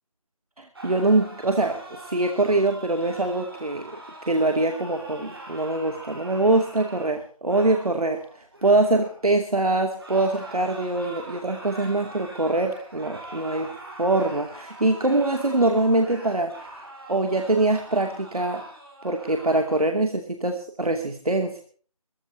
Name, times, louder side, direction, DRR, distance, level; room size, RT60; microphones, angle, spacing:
voice 1, 0.6-4.0 4.3-13.7 14.0-16.5 17.1-18.6 19.0-21.6, right 2 dB, 80° right, 4 dB, 2.7 m, -23 dB
sound 1, 0.7-9.2 9.9-19.9, right 2 dB, 40° right, 6.8 m, -42 dB
27.5 x 15.0 x 2.9 m, 0.43 s
figure-of-eight pair, 175°, 19 cm